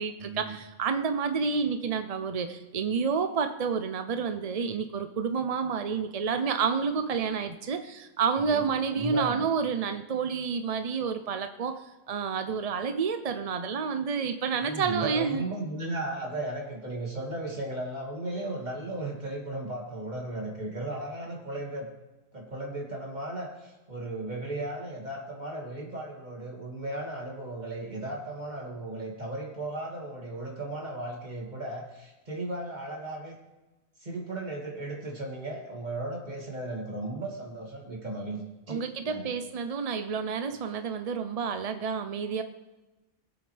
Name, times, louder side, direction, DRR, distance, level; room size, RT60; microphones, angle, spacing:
voice 1, 0.0-15.4 38.7-42.4, right 6 dB, 50° right, 8 dB, 0.4 m, -29 dB
voice 2, 8.9-9.5 14.6-21.9 22.3-33.4 34.0-39.3, right 2 dB, 30° right, -2 dB, 2.7 m, -36 dB
22.5 x 7.9 x 3.4 m, 1.1 s
omnidirectional pair, 1.4 m